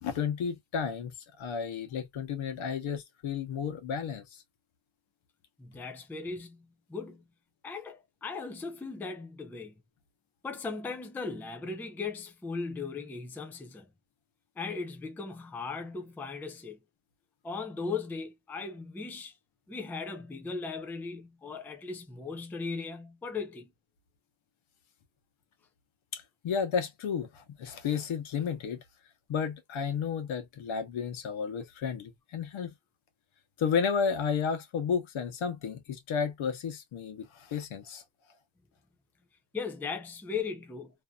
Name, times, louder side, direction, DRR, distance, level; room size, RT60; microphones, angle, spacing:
voice 1, 0.0-4.4 26.1-28.8 29.3-32.7 33.6-38.0, left 6 dB, 80° left, 1.0 m, -32 dB
voice 2, 5.6-7.3 7.6-9.7 10.4-13.9 14.6-16.8 17.4-19.3 19.7-23.7 39.5-40.9, left 4 dB, 5° left, 0.3 m, -38 dB
2.7 x 2.5 x 2.2 m
wide cardioid pair, 180°, 47 cm